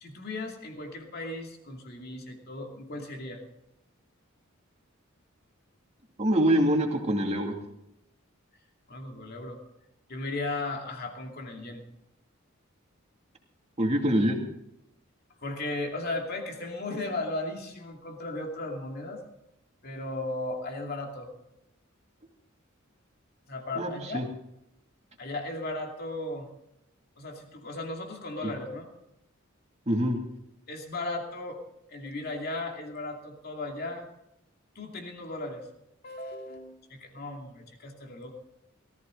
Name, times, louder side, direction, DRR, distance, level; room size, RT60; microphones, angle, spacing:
voice 1, 0.0-3.4 8.9-9.6 10.1-11.8 15.4-19.2 19.8-21.3 23.5-24.2 25.2-26.5 27.2-28.9 30.7-31.6 31.9-34.1 34.7-35.7 36.0-38.3, left 2 dB, 50° left, 2 dB, 2.6 m, -36 dB
voice 2, 6.2-7.5 13.8-14.4 23.8-24.2 28.4-28.5 29.9-30.2, equal, 30° right, 1 dB, 2.5 m, -25 dB
18.0 x 14.5 x 3.9 m, 0.85 s
head